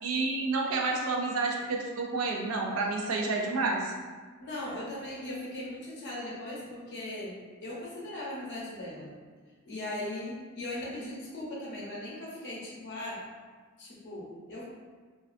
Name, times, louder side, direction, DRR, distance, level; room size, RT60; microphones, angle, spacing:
voice 1, 0.0-3.9, right 3 dB, 75° right, 0 dB, 0.4 m, -29 dB
voice 2, 4.4-7.4 7.6-9.1 9.6-13.2 13.8-14.6, left 1 dB, 55° left, -6 dB, 0.7 m, -38 dB
2.4 x 2.3 x 2.4 m, 1.5 s
head